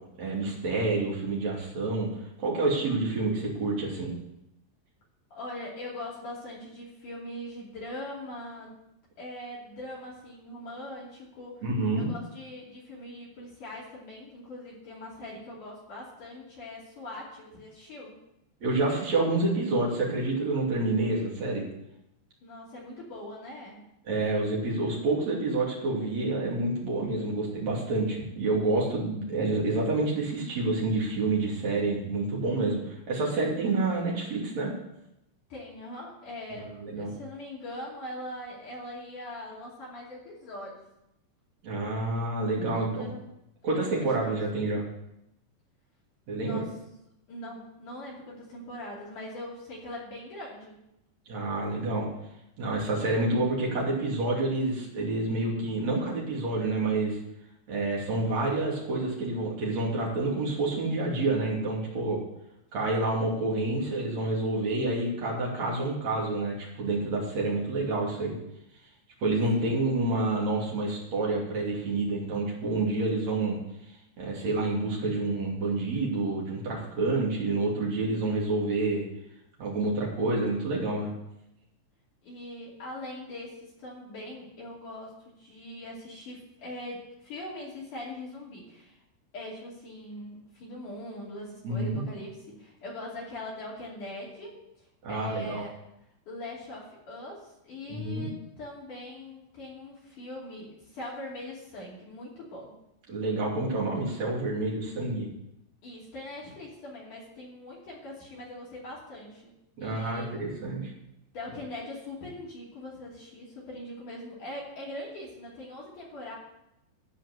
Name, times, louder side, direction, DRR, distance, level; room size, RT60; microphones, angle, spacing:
voice 1, 0.2-2.1 2.4-4.1 11.6-12.1 18.6-21.6 24.1-34.7 36.6-37.1 41.6-43.1 43.6-44.8 46.3-46.6 51.3-52.1 52.6-57.2 57.7-62.2 62.7-68.3 69.2-73.6 74.2-79.0 79.6-81.1 91.6-92.1 95.0-95.6 97.9-98.3 103.1-105.3 109.8-110.9, right 2 dB, 40° right, -4 dB, 3.5 m, -28 dB
voice 2, 5.3-8.7 9.2-11.6 12.0-18.1 22.4-23.8 35.5-40.8 42.7-43.2 43.7-44.1 46.4-46.7 47.3-50.8 69.6-69.7 82.2-89.0 89.3-95.8 96.3-102.7 105.8-109.4 109.8-110.3 111.3-116.3, left 1 dB, 45° left, -6 dB, 3.7 m, -41 dB
13.5 x 5.0 x 8.2 m, 0.84 s
omnidirectional pair, 5.5 m